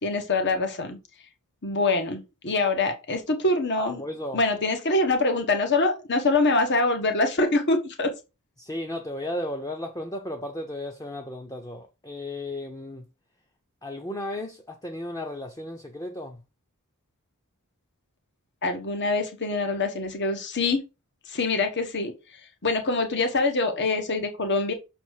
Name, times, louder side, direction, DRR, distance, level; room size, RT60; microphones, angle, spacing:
voice 1, 0.0-1.0 1.6-4.0 4.3-8.1 18.6-20.8 21.3-22.1 22.6-24.7, left 2 dB, 50° left, 1.4 m, -24 dB
voice 2, 3.8-4.4 8.6-13.0 13.8-16.4, left 1 dB, 15° left, 0.9 m, -34 dB
6.5 x 4.3 x 6.4 m
head